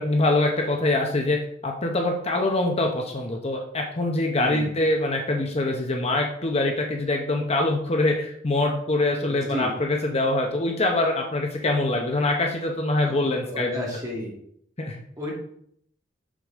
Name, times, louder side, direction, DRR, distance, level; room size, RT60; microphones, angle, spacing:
voice 1, 0.0-13.9 14.8-15.0, left 2 dB, 35° left, 2 dB, 0.8 m, -24 dB
voice 2, 9.3-9.7 13.0-14.3 15.2-15.3, left 1 dB, 20° right, -3 dB, 2.5 m, -33 dB
7.4 x 6.7 x 3.6 m, 0.67 s
head